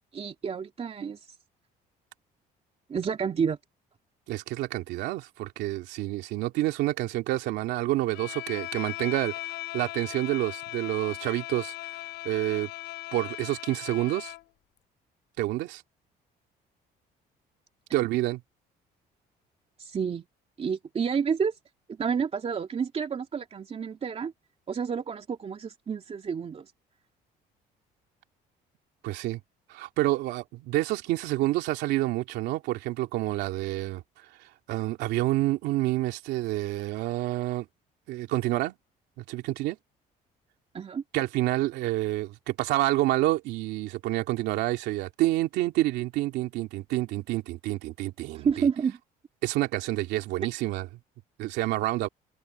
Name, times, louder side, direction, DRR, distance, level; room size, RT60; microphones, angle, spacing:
voice 1, 0.1-1.2 2.9-3.6 19.8-20.2 20.6-21.6 21.9-24.3 24.7-26.7 40.7-41.0 48.3-49.0, right 6 dB, 35° right, 2.7 m, -29 dB
voice 2, 4.3-11.7 12.2-12.7 13.1-14.3 15.4-15.8 17.9-18.4 29.0-29.4 29.7-34.0 34.7-37.7 38.1-38.7 39.2-39.8 41.1-48.7 49.4-50.9 51.4-52.1, right 17 dB, 90° right, 3.0 m, -28 dB
Bowed string instrument, 8.1-14.5, left 18 dB, 85° left, 6.0 m, -38 dB
cardioid pair, 110°, 17 cm